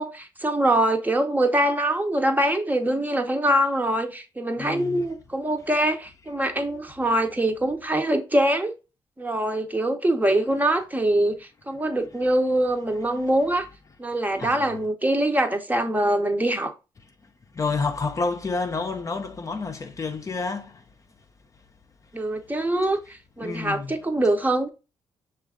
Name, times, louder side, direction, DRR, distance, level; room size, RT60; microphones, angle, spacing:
voice 1, 0.0-8.7 9.2-13.7 14.0-16.7 22.1-24.7, right 1 dB, 15° right, 0.7 m, -23 dB
voice 2, 4.6-5.1 13.2-13.3 14.4-14.8 17.2-20.8 23.4-24.0, left 4 dB, 35° left, 0.6 m, -30 dB
6.0 x 2.4 x 3.5 m
cardioid pair, 85°, 10 cm